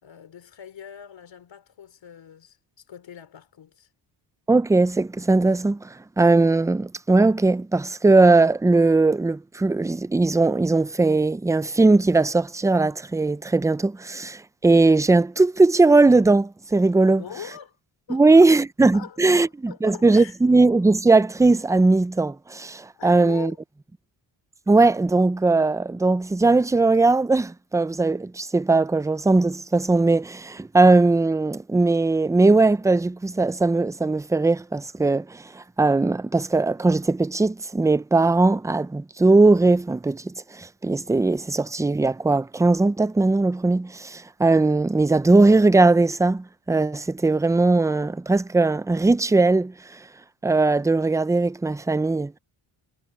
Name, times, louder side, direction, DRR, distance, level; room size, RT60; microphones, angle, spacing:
voice 1, 0.0-3.9 17.0-17.8 18.1-18.5 18.9-20.4 22.9-23.6, left 8 dB, 60° left, 3.6 m, -42 dB
voice 2, 4.5-17.2 18.1-19.5 19.8-23.5 24.7-49.7 50.4-52.4, right 3 dB, 5° right, 0.4 m, -19 dB
cardioid pair, 105°, 49 cm